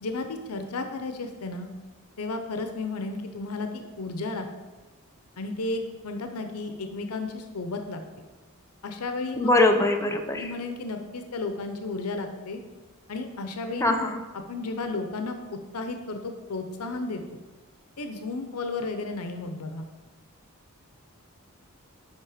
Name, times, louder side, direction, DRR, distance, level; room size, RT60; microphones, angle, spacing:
voice 1, 0.0-1.7 2.2-4.5 5.4-8.0 8.8-9.5 10.3-12.6 13.1-14.0 14.5-15.4 15.7-17.4 18.0-19.9, left 3 dB, 90° left, 6 dB, 0.7 m, -33 dB
voice 2, 9.4-10.5 13.8-14.2, left 2 dB, 15° left, 4 dB, 0.6 m, -22 dB
7.5 x 5.3 x 5.0 m, 1.2 s
head